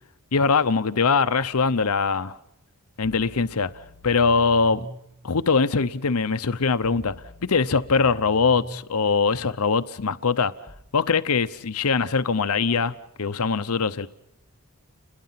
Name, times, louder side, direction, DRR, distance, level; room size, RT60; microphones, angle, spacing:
voice 1, 0.3-2.4 3.0-3.7 4.0-4.9 5.2-7.1 7.4-10.5 10.9-12.9 13.2-14.1, left 4 dB, 80° left, 0.8 m, -22 dB
sound 1, 3.0-5.0 6.8-8.8 10.7-10.8, right 1 dB, 20° right, 7.7 m, -43 dB
30.0 x 22.0 x 5.8 m
head